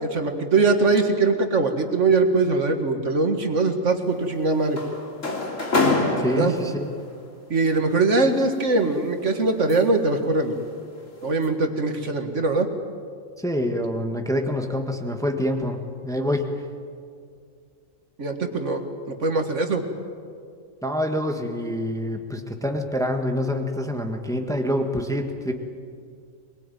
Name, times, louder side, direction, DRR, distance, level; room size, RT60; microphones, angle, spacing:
voice 1, 0.0-4.8 6.3-6.5 7.5-10.6 11.2-12.7 18.2-18.8 19.1-19.9, right 3 dB, 65° right, 5 dB, 2.0 m, -22 dB
sound 1, 4.1-7.0 8.2-10.1 10.5-10.8 11.2-11.5, left 2 dB, 70° left, 3.2 m, -27 dB
voice 2, 6.2-6.9 13.4-16.6 20.8-25.5, left 1 dB, 5° left, 3 dB, 1.5 m, -26 dB
23.0 x 21.0 x 9.2 m, 2.3 s
omnidirectional pair, 1.4 m